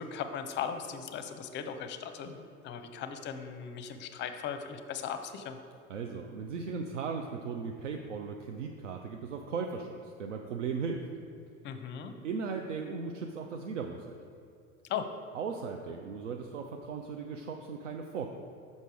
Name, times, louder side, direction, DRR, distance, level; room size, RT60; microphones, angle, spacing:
voice 1, 0.0-5.6 11.6-12.1 14.9-15.1, left 7 dB, 30° left, 8 dB, 0.6 m, -38 dB
voice 2, 5.9-11.0 12.2-14.2 15.3-18.3, right 5 dB, 75° right, 3 dB, 0.5 m, -37 dB
6.6 x 5.3 x 4.8 m, 2.5 s
figure-of-eight pair, 70°, 37 cm